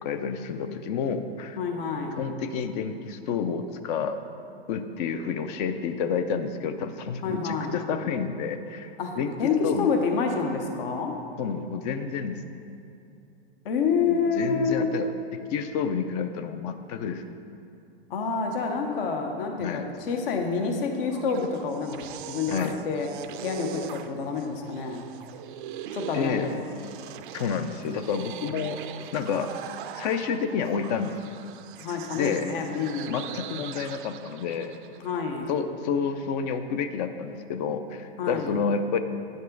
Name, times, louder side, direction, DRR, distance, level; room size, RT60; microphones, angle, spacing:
voice 1, 0.0-1.6 2.2-4.2 4.7-9.9 11.4-12.6 14.1-17.2 19.6-19.9 22.5-22.8 26.1-26.5 27.3-28.8 29.1-29.5 30.0-31.4 32.1-32.5 33.1-34.8 35.5-39.0, left 6 dB, 40° left, 9 dB, 0.5 m, -29 dB
voice 2, 1.6-2.2 7.2-7.8 9.0-11.2 13.6-14.9 18.1-23.1 23.4-25.0 25.9-26.6 31.8-33.2 35.0-35.5 38.2-38.5, left 5 dB, 60° left, 3 dB, 1.1 m, -28 dB
sound 1, 21.0-35.1, right 10 dB, 55° right, 0.5 m, -41 dB
9.7 x 5.3 x 3.9 m, 2.7 s
hypercardioid pair, 125°, 31 cm